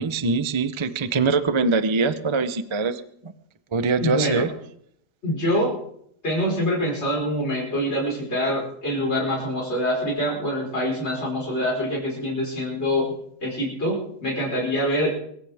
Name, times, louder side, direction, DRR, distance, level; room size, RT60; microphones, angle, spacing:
voice 1, 0.0-3.0 3.7-4.5, right 4 dB, 35° right, 12 dB, 0.4 m, -23 dB
voice 2, 4.0-4.5 5.2-5.7 6.2-13.1 13.4-15.1, equal, 40° left, -4 dB, 5.2 m, -25 dB
23.0 x 14.5 x 3.6 m, 0.70 s
omnidirectional pair, 1.8 m